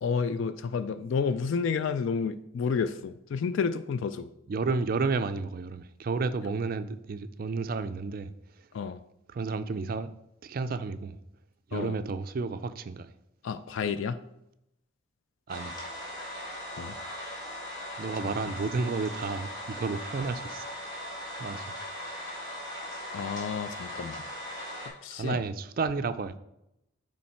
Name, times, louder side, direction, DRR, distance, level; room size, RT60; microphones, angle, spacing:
voice 1, 0.0-4.3 8.7-9.0 11.7-12.0 13.4-14.2 16.8-17.0 18.2-18.3 23.1-24.2 25.0-25.4, left 5 dB, 65° left, 0.3 m, -30 dB
voice 2, 4.5-8.3 9.3-10.1 10.4-11.2 11.7-13.1 15.5-15.8 18.0-20.7 21.4-21.7 25.1-26.4, right 4 dB, 45° right, 0.4 m, -31 dB
sound 1, 15.5-24.9, left 1 dB, 20° left, 1.5 m, -39 dB
8.8 x 3.2 x 4.3 m
head